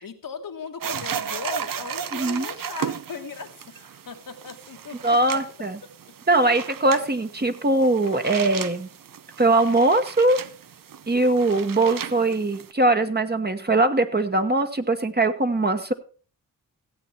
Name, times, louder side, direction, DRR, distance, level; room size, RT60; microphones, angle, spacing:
voice 1, 0.0-5.4 6.4-6.6, left 5 dB, 75° left, 5 dB, 1.5 m, -38 dB
sound 1, 0.8-12.7, right 8 dB, 75° right, 0.7 m, -35 dB
voice 2, 2.1-2.5 5.0-5.8 6.3-8.9 9.4-10.4 11.1-15.9, right 2 dB, 30° right, 7 dB, 1.2 m, -21 dB
15.5 x 8.6 x 4.3 m, 0.39 s
wide cardioid pair, 95°, 34 cm